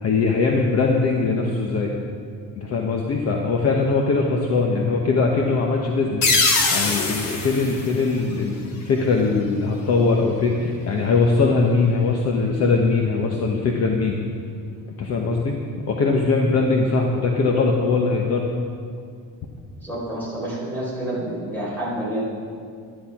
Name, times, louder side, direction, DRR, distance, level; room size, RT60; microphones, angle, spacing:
voice 1, 0.0-1.9 2.6-6.3 6.7-14.1 15.0-15.6 15.9-18.4, left 4 dB, 40° left, 0 dB, 1.1 m, -21 dB
sound 1, 6.2-8.8, left 3 dB, 65° left, 2.0 m, -23 dB
voice 2, 19.8-22.2, right 1 dB, 5° left, -6 dB, 4.2 m, -28 dB
12.0 x 11.0 x 5.9 m, 2.2 s
cardioid pair, 180°, 37 cm